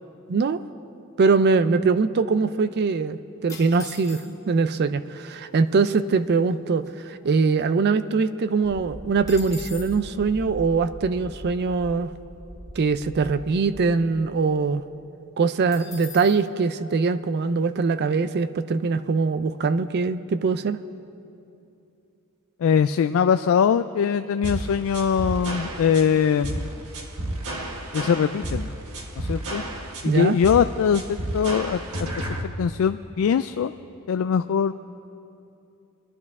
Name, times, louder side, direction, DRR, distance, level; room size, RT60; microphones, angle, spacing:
voice 1, 0.3-0.6 1.2-12.1 12.8-14.8 15.4-20.8 30.0-30.4, right 4 dB, 50° right, 13 dB, 0.4 m, -22 dB
sound 1, 3.5-4.6 5.4-5.5 5.7-6.0 6.4-7.9 8.3-8.4 8.6-10.0 15.7-16.4, left 6 dB, 15° left, 1.4 m, -43 dB
sound 2, 8.6-14.0, equal, 10° right, 3.0 m, -41 dB
voice 2, 22.6-26.7 27.9-28.7 29.2-29.6 30.0-32.3 32.6-33.7 34.1-34.7, left 7 dB, 65° left, 10 dB, 0.3 m, -22 dB
sound 3, 24.4-32.4, right 1 dB, 70° right, 1.2 m, -32 dB
23.0 x 11.5 x 3.6 m, 2.7 s
head